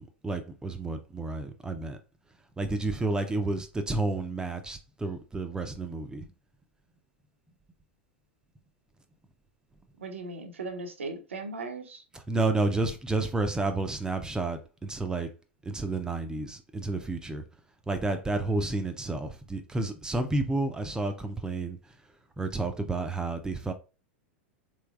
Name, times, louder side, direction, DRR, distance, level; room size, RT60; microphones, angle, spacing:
voice 1, 0.2-2.0 2.6-6.3 12.3-15.3 15.7-17.4 17.9-21.8 22.4-23.7, right 2 dB, 10° right, 0.4 m, -30 dB
voice 2, 10.0-12.0, right 3 dB, 90° right, 0.6 m, -38 dB
3.3 x 3.2 x 2.4 m
hypercardioid pair, 100°, 6 cm